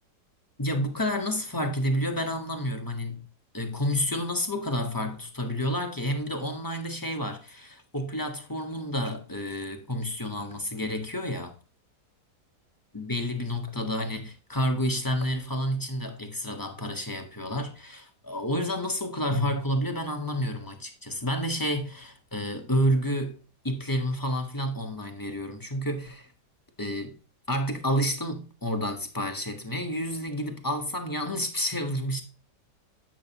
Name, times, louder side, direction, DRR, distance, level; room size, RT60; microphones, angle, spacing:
voice 1, 0.6-3.3 3.5-11.6 12.9-23.4 23.6-26.3 26.8-27.2 27.5-32.2, equal, 15° left, 0.8 m, -30 dB
8.6 x 6.3 x 2.9 m
omnidirectional pair, 1.8 m